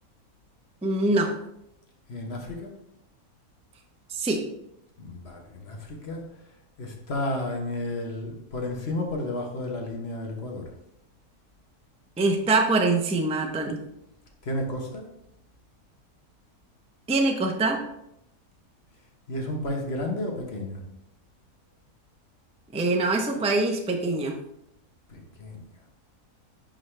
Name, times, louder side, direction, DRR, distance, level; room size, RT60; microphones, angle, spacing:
voice 1, 0.8-1.3 4.1-4.4 12.2-13.8 17.1-17.8 22.7-24.3, right 2 dB, 10° right, 2 dB, 0.4 m, -24 dB
voice 2, 2.1-2.7 5.0-6.2 6.8-10.6 14.4-15.1 19.3-20.8 25.1-25.7, left 1 dB, 45° left, 1 dB, 1.2 m, -32 dB
10.5 x 3.9 x 3.3 m, 0.82 s
omnidirectional pair, 1.6 m